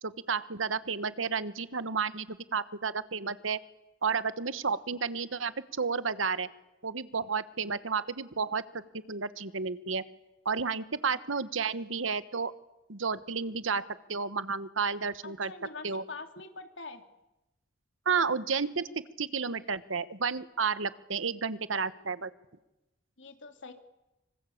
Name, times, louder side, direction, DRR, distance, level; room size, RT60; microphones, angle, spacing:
voice 1, 0.0-3.6 4.0-6.5 6.8-10.0 10.4-12.5 12.9-15.5 15.8-16.0 18.0-18.9 19.2-22.3, right 5 dB, 90° right, 14 dB, 1.3 m, -32 dB
voice 2, 15.2-17.0 18.5-18.6 23.2-23.7, left 3 dB, 70° left, 7 dB, 2.9 m, -44 dB
25.5 x 25.5 x 8.7 m, 0.97 s
head